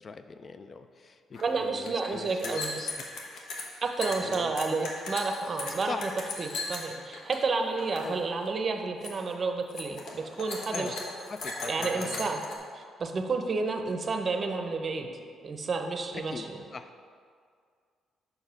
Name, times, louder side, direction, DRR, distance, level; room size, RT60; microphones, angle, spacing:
voice 1, 0.0-2.9 4.1-4.9 5.9-6.0 8.0-8.3 10.7-10.9 11.3-12.3 16.1-16.9, left 4 dB, 40° left, 9 dB, 0.3 m, -41 dB
sound 1, 1.3-1.4 1.7-7.4 7.7-8.2 8.5-8.7 9.0-9.3 9.7-12.6, left 2 dB, 70° left, 1.1 m, -38 dB
voice 2, 1.4-2.8 3.8-6.1 6.4-11.0 11.7-12.4 12.7-15.1 15.4-16.6, right 4 dB, 40° right, 5 dB, 0.7 m, -31 dB
5.3 x 4.7 x 5.7 m, 2.1 s
cardioid pair, 90°, 0 cm